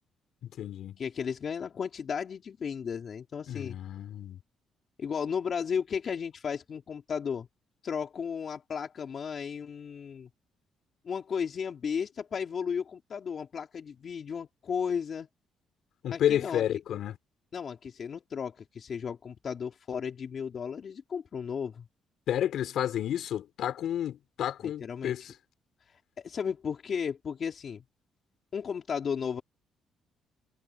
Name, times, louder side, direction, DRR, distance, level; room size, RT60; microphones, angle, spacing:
voice 1, 0.4-1.0 3.5-4.4 16.0-17.2 22.3-25.3, left 10 dB, 75° left, 4.4 m, -31 dB
voice 2, 1.0-3.8 5.0-7.5 7.8-10.3 11.0-15.3 16.1-16.6 17.5-21.9 24.6-25.1 26.2-27.8 28.5-29.4, left 6 dB, 50° left, 3.1 m, -34 dB
cardioid pair, 90°, 0 cm